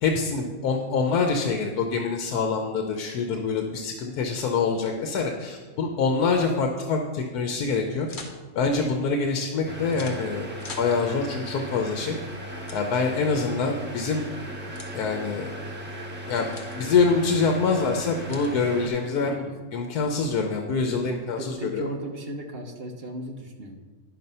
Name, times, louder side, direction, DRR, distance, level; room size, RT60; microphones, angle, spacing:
voice 1, 0.0-8.1 8.5-10.5 10.8-12.2 12.7-14.2 14.9-15.5 16.3-16.5 16.8-19.3 19.7-21.8, left 4 dB, 90° left, 3 dB, 1.3 m, -25 dB
sound 1, 8.1-8.4 9.9-10.2 10.6-10.9 12.7-12.8 14.7-14.9 16.5-16.8 18.3-18.5, left 3 dB, 35° left, 1.1 m, -41 dB
sound 2, 9.6-18.9, equal, 5° right, 1.5 m, -37 dB
voice 2, 19.2-19.6 20.9-23.8, right 1 dB, 45° right, 3 dB, 1.1 m, -36 dB
10.0 x 6.0 x 5.4 m, 1.4 s
omnidirectional pair, 1.6 m